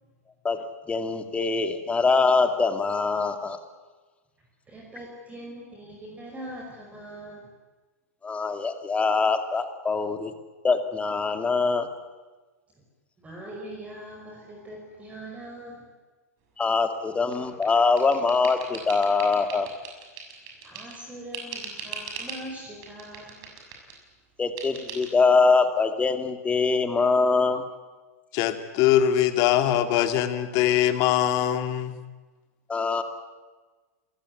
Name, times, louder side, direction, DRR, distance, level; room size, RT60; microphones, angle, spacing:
voice 1, 0.4-3.6 8.2-10.3 10.6-11.9 16.6-19.7 24.4-27.6 32.7-33.0, left 4 dB, 15° left, 7 dB, 2.5 m, -23 dB
voice 2, 4.7-7.5 13.2-15.9 20.6-23.5, right 1 dB, 15° right, -1 dB, 5.3 m, -41 dB
sound 1, 17.3-21.0 21.3-22.4 22.8-24.0 24.6-25.1, right 5 dB, 45° right, 6.8 m, -40 dB
voice 3, 28.3-32.0, left 11 dB, 45° left, 8 dB, 2.4 m, -22 dB
28.0 x 15.5 x 9.8 m, 1.3 s
hypercardioid pair, 110°, 8 cm